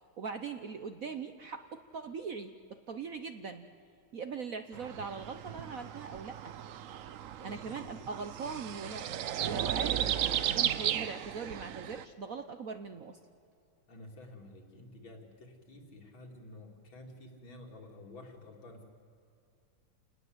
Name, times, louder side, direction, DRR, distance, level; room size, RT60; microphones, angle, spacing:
voice 1, 0.2-3.7 4.1-6.3 7.4-9.1 9.4-13.2, right 5 dB, 55° right, 8 dB, 1.0 m, -41 dB
sound 1, 4.7-12.0, right 10 dB, 85° right, 0.7 m, -35 dB
voice 2, 7.3-8.1 8.8-9.0 13.9-18.9, left 1 dB, 65° left, 2 dB, 3.6 m, -51 dB
29.0 x 19.5 x 8.0 m, 2.5 s
omnidirectional pair, 2.3 m